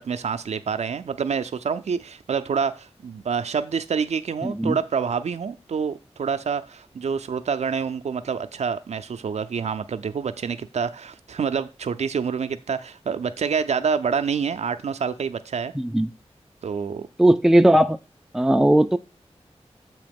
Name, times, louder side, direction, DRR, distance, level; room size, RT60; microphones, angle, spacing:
voice 1, 0.0-15.7 16.6-17.1, right 6 dB, 75° right, 0.4 m, -27 dB
voice 2, 4.4-4.8 15.7-16.1 17.2-18.0 18.3-19.0, right 1 dB, 5° right, 0.4 m, -18 dB
7.7 x 3.0 x 5.2 m
wide cardioid pair, 75°, 11 cm